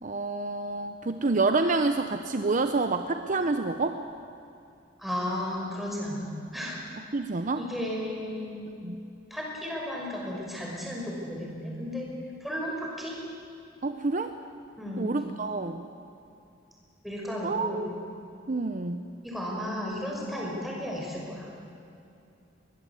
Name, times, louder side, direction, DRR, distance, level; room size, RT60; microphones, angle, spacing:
voice 1, 0.0-4.0 7.0-7.7 8.8-9.0 13.8-14.3 15.0-15.9 17.4-17.8 18.5-19.0, right 3 dB, 40° right, 8 dB, 0.8 m, -28 dB
voice 2, 5.0-6.8 7.6-8.7 9.3-12.1 12.4-13.1 14.8-15.1 17.0-17.9 19.2-21.5, equal, ahead, -3 dB, 5.7 m, -34 dB
22.0 x 20.0 x 8.4 m, 2.6 s
head